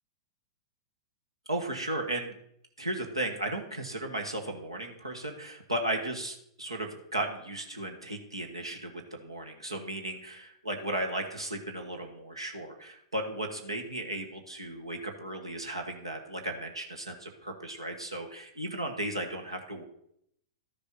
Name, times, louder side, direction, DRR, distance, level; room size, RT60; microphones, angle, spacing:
voice 1, 1.5-2.3 2.8-19.8, right 1 dB, 85° right, 3 dB, 1.6 m, -35 dB
12.5 x 6.9 x 5.7 m, 0.72 s
figure-of-eight pair, 105°, 3 cm